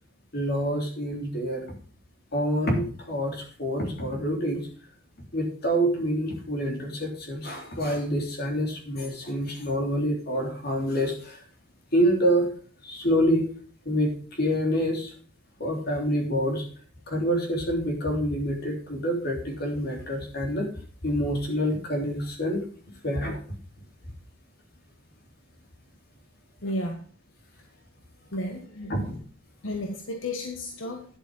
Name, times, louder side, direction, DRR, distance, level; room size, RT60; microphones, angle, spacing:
voice 1, 0.3-1.6 2.3-4.7 5.3-11.4 11.9-12.5 12.8-13.4 13.9-15.1 15.6-16.6 17.1-20.7 21.0-22.7 23.0-23.4 28.9-29.2, equal, 55° left, 2 dB, 3.5 m, -27 dB
voice 2, 26.6-27.0 27.6-27.7 28.3-29.1 29.6-31.1, left 1 dB, 90° left, 4 dB, 1.4 m, -33 dB
10.5 x 8.1 x 5.4 m, 0.43 s
head